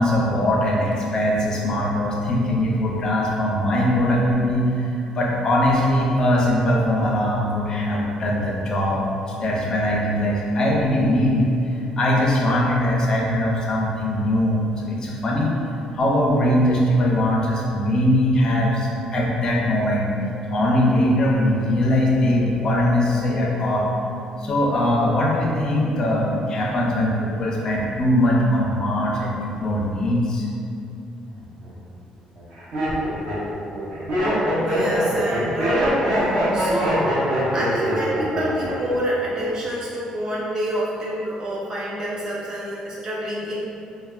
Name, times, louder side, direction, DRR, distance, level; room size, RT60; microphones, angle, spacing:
voice 1, 0.0-9.0 9.4-11.5 12.0-15.6 16.0-20.1 20.5-23.9 24.4-30.5, left 1 dB, 35° left, -3 dB, 0.4 m, -21 dB
Laughter, 31.3-31.7 32.4-39.0 39.2-39.8, equal, 60° right, 0.8 m, -23 dB
voice 2, 34.7-37.0 37.5-43.6, right 1 dB, 30° right, -6 dB, 0.5 m, -27 dB
3.2 x 2.1 x 2.3 m, 2.6 s
cardioid pair, 155°, 2 cm